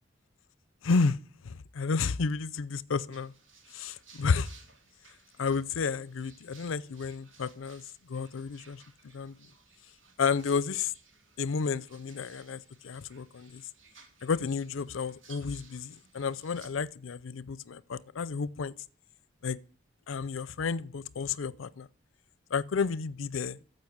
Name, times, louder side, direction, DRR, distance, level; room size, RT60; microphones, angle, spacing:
voice 1, 0.8-1.2 1.4-3.3 3.7-4.5 5.4-7.8 8.1-8.8 9.1-9.3 10.2-10.9 11.4-13.6 14.2-18.7 19.4-19.6 20.1-21.9 22.5-23.6, left 5 dB, 85° left, 0.5 m, -31 dB
sound 1, 3.1-16.7, right 5 dB, 80° right, 3.2 m, -59 dB
14.5 x 5.3 x 7.8 m
head